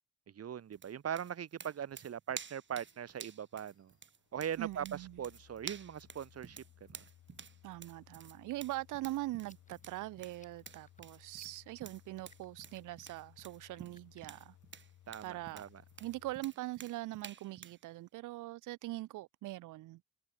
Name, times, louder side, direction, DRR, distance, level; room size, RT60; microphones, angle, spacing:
voice 1, 0.3-3.9 4.3-7.0 15.1-15.8, right 9 dB, 55° right, 2.3 m, -41 dB
sound 1, 0.7-17.8, right 7 dB, 40° right, 1.6 m, -51 dB
sound 2, 2.3-16.3, left 12 dB, 70° left, 2.1 m, -63 dB
voice 2, 4.6-5.2 7.6-14.5 15.2-15.6 16.0-20.0, right 17 dB, 90° right, 1.0 m, -42 dB
sound 3, 9.4-14.4, left 3 dB, 25° left, 7.5 m, -67 dB
cardioid pair, 90°, 30 cm